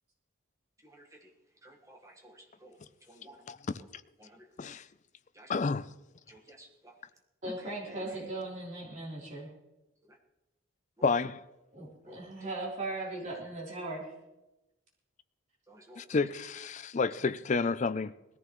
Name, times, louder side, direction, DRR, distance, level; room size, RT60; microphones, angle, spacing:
voice 1, 1.6-2.3 2.6-2.8 3.1-3.4 4.2-4.3 5.4-5.5 6.3-6.7 12.1-12.3 15.7-16.0, right 1 dB, 15° right, 1.4 m, -54 dB
voice 2, 3.5-3.8 4.6-4.8 5.5-5.9 11.0-11.4 16.0-18.1, left 4 dB, 35° left, 0.4 m, -30 dB
voice 3, 7.4-9.5 11.7-14.1, right 2 dB, 35° right, 3.6 m, -38 dB
20.0 x 14.5 x 3.1 m
head